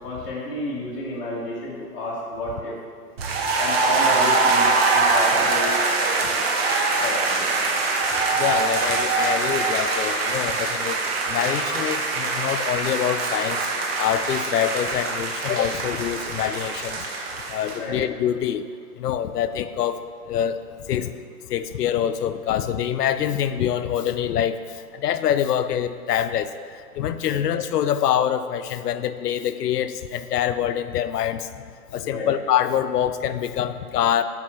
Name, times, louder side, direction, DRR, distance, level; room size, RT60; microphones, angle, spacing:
voice 1, 0.0-2.7 3.6-5.8 6.1-6.4 7.0-7.5 17.7-18.0 27.3-27.4 32.0-32.3, left 1 dB, 35° left, -6 dB, 1.0 m, -31 dB
sound 1, 3.2-17.8, right 3 dB, 40° right, 0.7 m, -23 dB
voice 2, 8.4-11.0 11.3-13.6 14.0-17.0 17.5-18.6 19.0-20.0 20.3-20.6 20.9-21.1 21.5-24.6 24.9-26.5 27.0-31.5 31.9-34.2, left 10 dB, 80° left, 11 dB, 0.6 m, -25 dB
8.1 x 4.7 x 3.0 m, 2.1 s
hypercardioid pair, 150°, 46 cm